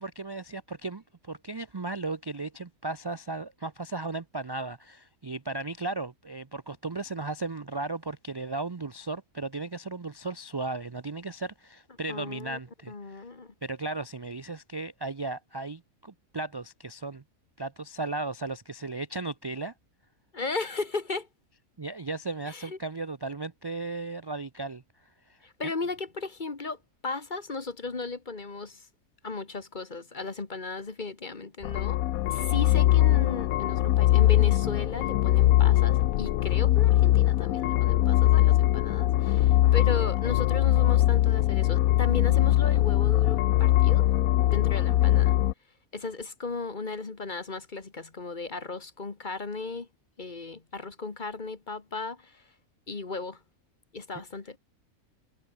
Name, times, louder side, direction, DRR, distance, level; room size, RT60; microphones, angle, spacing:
voice 1, 0.0-13.2 13.6-17.2 17.6-19.7 21.8-24.8 25.3-25.7, right 3 dB, 40° right, 0.3 m, -36 dB
voice 2, 12.1-12.6 12.9-13.5 20.3-21.3 22.5-22.8 25.4-28.9 29.2-32.0 32.3-44.1 44.5-45.4 45.9-49.9 50.2-52.4 52.9-53.4 53.9-54.6, left 3 dB, 35° left, 1.7 m, -36 dB
sound 1, 31.6-45.5, left 14 dB, 80° left, 1.1 m, -22 dB
omnidirectional pair, 1.5 m